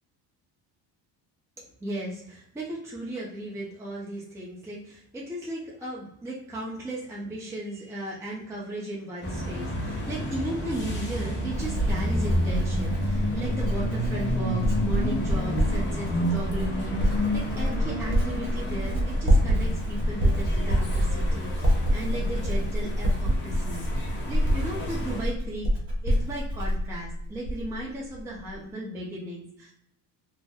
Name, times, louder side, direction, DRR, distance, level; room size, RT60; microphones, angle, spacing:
voice 1, 1.8-23.8 24.3-25.7 26.0-29.7, right 1 dB, 5° right, -5 dB, 0.5 m, -36 dB
sound 1, 9.2-25.2, equal, 25° left, 0.9 m, -31 dB
Writing, 10.8-27.8 28.1-28.6, equal, 25° right, 1.0 m, -27 dB
2.5 x 2.1 x 3.5 m, 0.73 s
cardioid pair, 125°, 46 cm